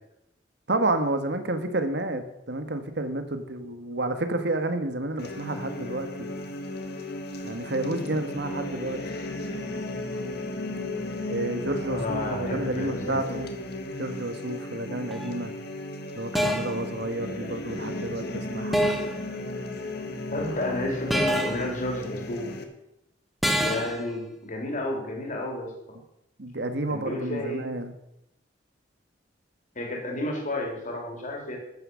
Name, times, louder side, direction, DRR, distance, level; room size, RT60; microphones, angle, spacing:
voice 1, 0.7-6.4 7.4-9.0 11.3-13.5 14.0-15.5 16.1-18.9 26.4-27.9, right 2 dB, 65° right, 8 dB, 1.7 m, -30 dB
sound 1, 5.2-22.6, left 1 dB, 60° left, 1.8 m, -35 dB
voice 2, 11.9-13.2 20.3-22.5 23.6-25.7 26.9-27.7 29.8-31.6, left 1 dB, 45° left, 1 dB, 3.9 m, -31 dB
sound 2, 15.1-15.3 16.3-16.8 18.7-19.2 21.1-21.7 23.4-24.0, equal, ahead, 1.4 m, -26 dB
13.5 x 9.5 x 6.5 m, 0.83 s
head